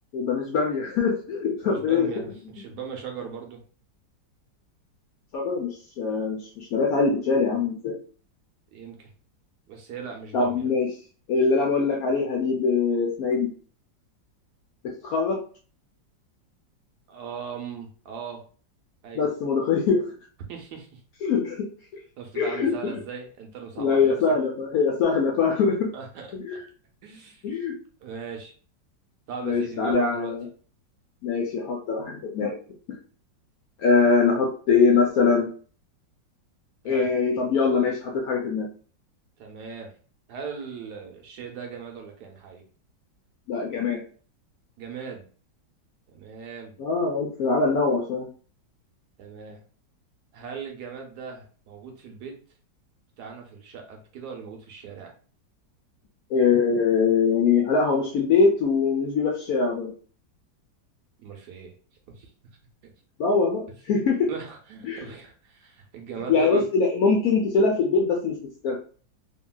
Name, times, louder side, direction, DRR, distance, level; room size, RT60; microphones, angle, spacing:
voice 1, 0.1-2.1 5.3-8.0 10.3-10.9 11.3-13.5 14.8-15.4 19.1-20.1 21.2-21.7 22.3-23.0 23.8-25.9 26.3-26.6 27.4-27.7 29.4-30.5 31.2-32.6 33.8-35.5 36.8-38.7 43.5-44.0 46.8-48.3 56.3-59.9 63.2-64.3 64.8-65.0 66.3-68.4 68.6-68.8, left 5 dB, 70° left, 0 dB, 0.9 m, -23 dB
voice 2, 1.6-3.6 8.7-9.1 9.7-10.7 17.1-18.4 19.0-19.2 20.5-21.0 22.2-24.2 25.9-26.3 27.0-27.4 28.0-28.5 29.3-30.3 36.8-37.1 39.4-39.9 40.3-42.6 44.8-45.2 46.1-46.7 49.2-49.6 50.3-52.4 53.2-55.1 61.2-61.7 62.2-62.3 62.8-62.9 64.3-66.6, right 6 dB, 70° right, 2 dB, 1.1 m, -38 dB
2.8 x 2.7 x 2.2 m, 0.41 s
omnidirectional pair, 2.0 m